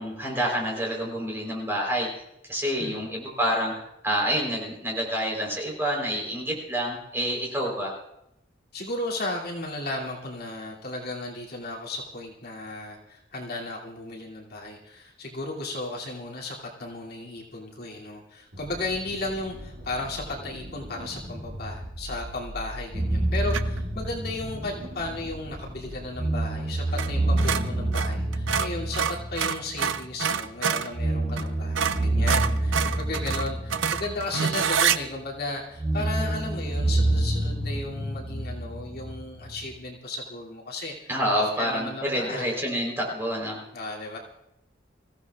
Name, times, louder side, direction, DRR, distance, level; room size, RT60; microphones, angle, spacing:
voice 1, 0.0-2.1 2.5-3.7 4.0-7.9 41.1-43.6, equal, 10° right, -1 dB, 3.8 m, -28 dB
voice 2, 8.7-40.9 41.3-42.5 43.7-44.2, left 2 dB, 55° left, -4 dB, 2.7 m, -35 dB
sound 1, 18.5-26.1, equal, 70° right, 2.2 m, -40 dB
sound 2, 22.9-25.7 26.1-30.4 30.9-35.0 35.8-39.7, right 1 dB, 40° right, 4.5 m, -28 dB
sound 3, 23.5-23.8 26.9-27.1 27.4-30.9 31.4-31.5 31.7-35.0, right 7 dB, 85° right, 0.6 m, -27 dB
25.5 x 15.5 x 2.4 m, 0.84 s
head